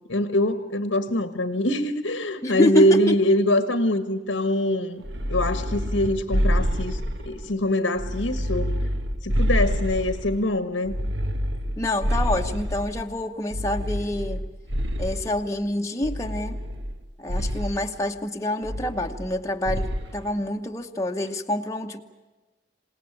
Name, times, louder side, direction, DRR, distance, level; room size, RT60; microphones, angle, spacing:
voice 1, 0.1-5.0 5.3-7.0 7.2-8.8 9.2-10.9, left 1 dB, 85° left, 9 dB, 1.4 m, -23 dB
voice 2, 2.4-3.2 11.8-14.4 15.0-16.6 17.2-22.0, left 1 dB, 15° left, 2 dB, 1.0 m, -27 dB
sound 1, 5.0-7.5 7.9-10.4 10.9-13.0 13.5-15.4 16.0-17.0 17.3-17.8 18.6-19.4 19.7-20.1, equal, 65° right, 1.4 m, -27 dB
27.0 x 18.5 x 8.7 m, 1.2 s
head